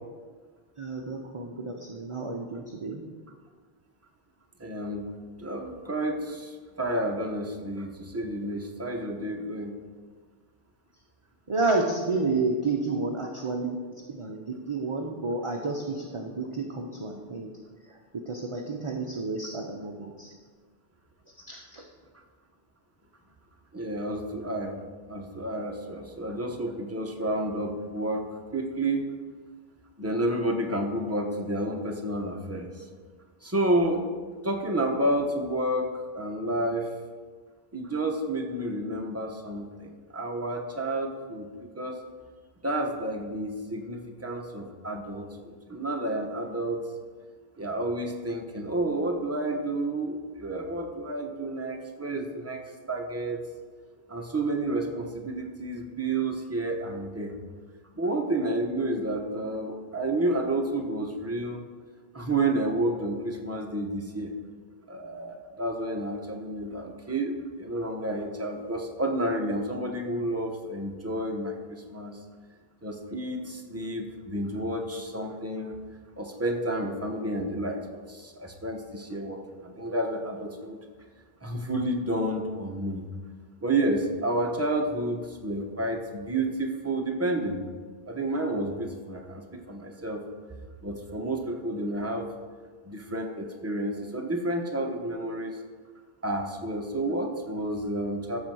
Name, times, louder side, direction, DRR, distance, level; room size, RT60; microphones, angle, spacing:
voice 1, 0.8-3.0 11.5-13.8 14.1-17.5 17.9-20.4 21.5-21.8, right 3 dB, 35° right, 2 dB, 0.8 m, -30 dB
voice 2, 4.6-5.1 5.4-9.8 23.7-24.8 25.1-29.0 30.0-32.9 33.4-34.0 34.4-36.9 37.7-41.5 41.7-42.0 42.6-46.8 47.6-52.6 52.9-53.4 54.1-57.3 57.9-61.6 62.1-64.3 64.9-72.2 72.8-75.8 76.2-80.8 81.4-83.0 83.6-87.6 88.1-90.2 90.8-92.3 92.8-95.6 96.2-98.4, right 1 dB, 15° right, 2 dB, 1.0 m, -30 dB
13.0 x 4.4 x 6.2 m, 1.5 s
omnidirectional pair, 1.0 m